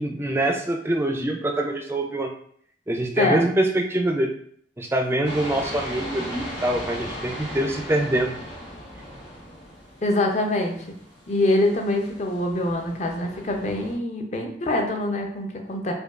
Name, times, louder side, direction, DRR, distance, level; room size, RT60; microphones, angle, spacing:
voice 1, 0.0-2.3 2.9-4.3 4.8-8.4, right 1 dB, 15° right, 2 dB, 0.3 m, -24 dB
sound 1, 5.2-13.9, equal, 85° left, 1.2 m, -38 dB
voice 2, 10.0-10.7 11.3-15.9, left 1 dB, 40° left, 2 dB, 0.5 m, -24 dB
5.0 x 2.2 x 2.4 m, 0.63 s
head